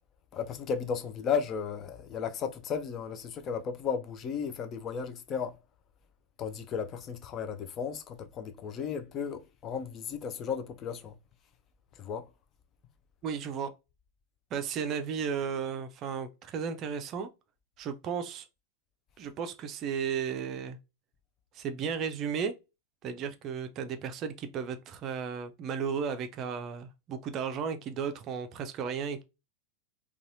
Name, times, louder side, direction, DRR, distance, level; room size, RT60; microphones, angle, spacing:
voice 1, 0.3-5.6 6.4-11.1 12.0-12.3, left 6 dB, 30° left, 0.5 m, -34 dB
voice 2, 13.2-13.7 14.5-17.3 17.8-18.5 19.2-20.8 21.5-22.6 23.0-29.2, right 6 dB, 35° right, 0.4 m, -34 dB
4.0 x 2.3 x 2.6 m
figure-of-eight pair, 90°, 0 cm